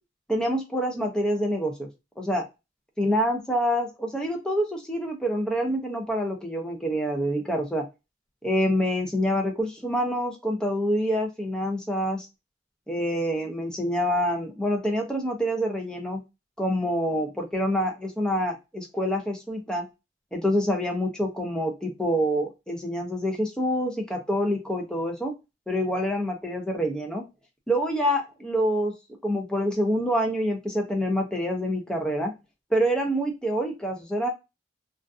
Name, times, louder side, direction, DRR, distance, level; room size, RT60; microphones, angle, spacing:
voice 1, 0.3-1.9 2.2-2.4 3.0-7.8 8.4-12.3 12.9-16.2 16.6-19.9 20.3-25.3 25.7-27.2 27.7-28.9 29.2-32.3 32.7-34.3, equal, 5° left, 1 dB, 0.5 m, -26 dB
2.4 x 2.3 x 2.3 m, 0.24 s
head